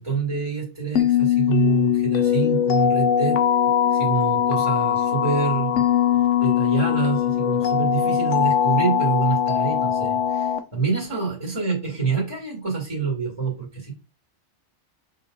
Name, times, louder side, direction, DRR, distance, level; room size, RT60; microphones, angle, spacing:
voice 1, 0.0-3.4 3.9-13.9, right 5 dB, 25° right, -3 dB, 2.3 m, -26 dB
sound 1, 0.9-10.6, left 9 dB, 85° left, 1.0 m, -21 dB
6.4 x 3.9 x 3.8 m, 0.29 s
omnidirectional pair, 1.2 m